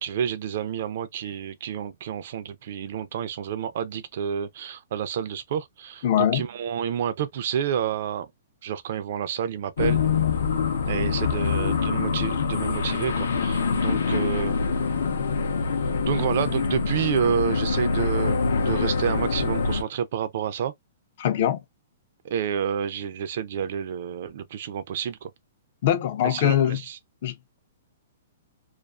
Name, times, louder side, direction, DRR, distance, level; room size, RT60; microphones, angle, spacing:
voice 1, 0.0-8.3 8.6-10.0 10.9-14.6 16.0-20.7 22.2-25.3 26.2-27.0, right 8 dB, 45° right, 0.3 m, -29 dB
voice 2, 6.0-6.4 21.2-21.6 25.8-26.8 27.2-27.6, left 11 dB, 40° left, 0.3 m, -23 dB
sound 1, 9.8-19.8, left 5 dB, 85° left, 0.6 m, -25 dB
2.4 x 2.3 x 2.3 m
hypercardioid pair, 175°, 0 cm